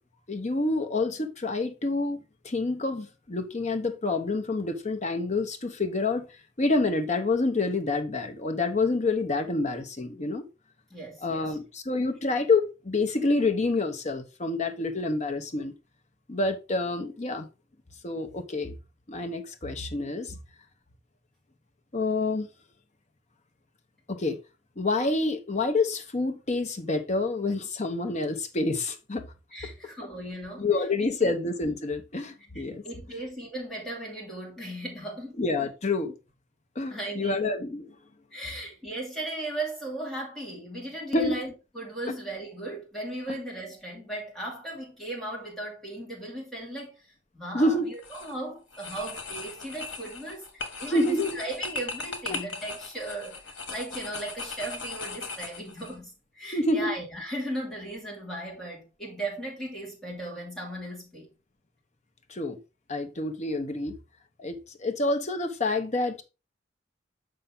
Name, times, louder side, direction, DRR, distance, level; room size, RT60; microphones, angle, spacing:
voice 1, 0.3-2.2 2.4-6.3 6.6-10.4 11.2-15.7 16.3-17.5 18.0-18.7 19.1-20.3 21.9-22.5 24.1-24.4 24.8-29.3 30.6-32.8 35.4-36.1 36.8-37.9 41.1-41.4 43.3-43.4 47.5-47.9 50.9-51.4 52.3-52.4 56.5-56.9 62.3-62.6 62.9-64.0 64.4-66.2, left 2 dB, 35° left, 0.9 m, -27 dB
voice 2, 10.9-11.6 29.5-30.7 31.2-31.4 32.5-35.4 36.9-37.5 38.3-61.3, right 1 dB, ahead, 2.7 m, -37 dB
sound 1, 47.9-48.3 48.7-55.9, left 3 dB, 70° left, 1.4 m, -38 dB
6.6 x 5.7 x 3.8 m
head